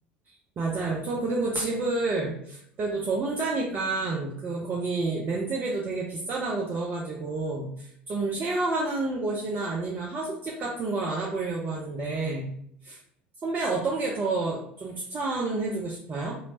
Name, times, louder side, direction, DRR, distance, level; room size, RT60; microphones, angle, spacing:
voice 1, 0.6-12.5 12.8-13.0 13.4-16.3, right 3 dB, 30° right, -2 dB, 0.6 m, -29 dB
3.1 x 2.9 x 2.8 m, 0.70 s
figure-of-eight pair, 70°, 6 cm